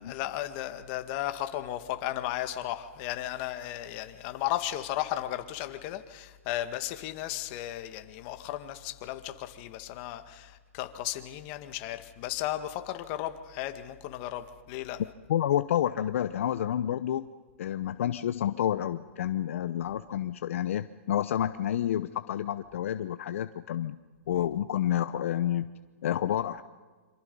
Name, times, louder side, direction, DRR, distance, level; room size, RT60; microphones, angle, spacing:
voice 1, 0.0-15.0 19.9-20.0 24.3-24.5, left 13 dB, 40° left, 1.9 m, -35 dB
voice 2, 15.3-17.3 17.6-24.0 24.3-25.7 26.0-26.6, left 11 dB, 65° left, 0.9 m, -29 dB
26.5 x 26.5 x 5.5 m
hypercardioid pair, 140°, 8 cm